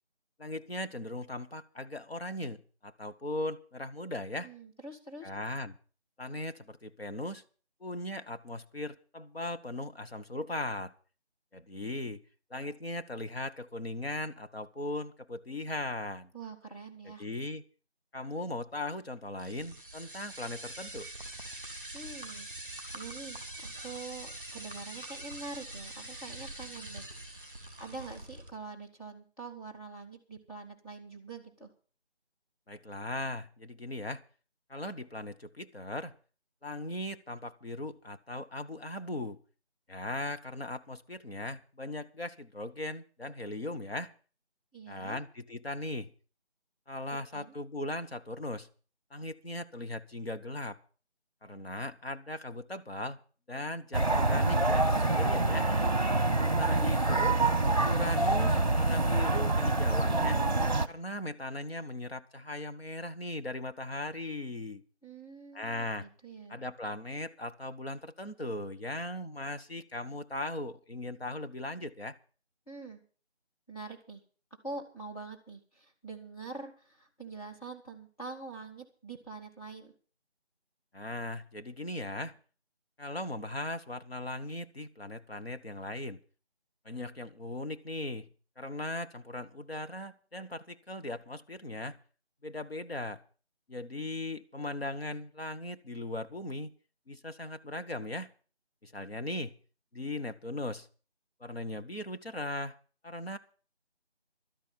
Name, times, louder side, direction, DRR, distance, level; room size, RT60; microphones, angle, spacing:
voice 1, 0.4-4.5 5.2-5.8 6.2-7.4 7.8-10.9 11.5-12.2 12.5-16.3 17.0-17.6 18.1-21.1 32.7-34.2 34.7-36.1 36.6-39.4 39.9-44.1 44.9-46.1 46.9-48.7 49.1-50.8 51.4-53.2 53.5-55.7 56.3-57.4 57.8-60.4 60.9-64.8 65.5-66.1 66.5-72.2 80.9-82.3 83.0-86.2 86.8-88.3 88.6-92.0 92.4-93.2 93.7-96.7 97.1-98.3 98.8-99.5 99.9-100.9 101.4-102.8 103.0-103.4, left 1 dB, 60° left, 1.2 m, -38 dB
voice 2, 4.4-5.3 16.3-17.3 21.9-23.4 23.8-27.5 27.8-31.7 44.7-45.2 47.3-47.5 65.0-66.6 72.7-73.0 73.7-74.2 74.6-79.9, right 3 dB, 35° left, 2.3 m, -45 dB
sound 1, 19.4-28.5, right 1 dB, 5° right, 3.1 m, -44 dB
sound 2, 53.9-60.9, right 2 dB, 40° right, 0.9 m, -26 dB
12.0 x 10.5 x 7.3 m
figure-of-eight pair, 180°, 34 cm